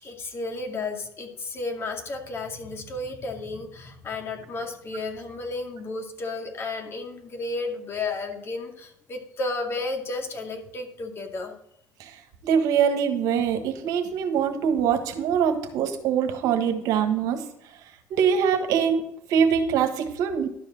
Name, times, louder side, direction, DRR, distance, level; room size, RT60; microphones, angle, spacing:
voice 1, 0.0-11.5, left 3 dB, 40° left, 3 dB, 2.2 m, -33 dB
voice 2, 12.4-17.4 18.1-19.0 19.3-20.5, right 7 dB, 70° right, 6 dB, 1.5 m, -23 dB
11.5 x 4.8 x 7.4 m, 0.75 s
supercardioid pair, 95°, 6 cm